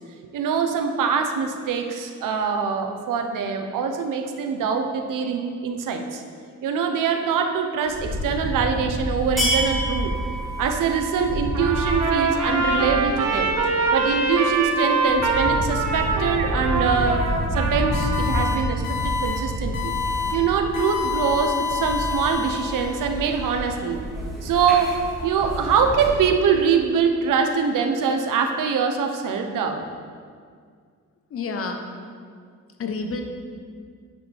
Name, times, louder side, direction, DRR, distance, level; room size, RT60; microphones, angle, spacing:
voice 1, 0.2-6.2 6.6-10.1 10.6-13.5 13.9-17.2 17.5-20.0 20.3-24.0 24.4-29.8, right 6 dB, 85° right, 5 dB, 1.0 m, -23 dB
sound 1, 7.8-26.3, equal, ahead, 2.5 m, -29 dB
Trumpet, 11.5-18.6, right 3 dB, 60° right, 1.6 m, -24 dB
sound 2, 17.9-18.5 18.8-19.4 19.7-20.3 20.7-23.1, left 5 dB, 80° left, 2.2 m, -28 dB
voice 2, 31.3-31.8 32.8-33.2, left 4 dB, 45° left, 4 dB, 1.0 m, -29 dB
9.9 x 9.8 x 3.5 m, 2.1 s
cardioid pair, 165°, 31 cm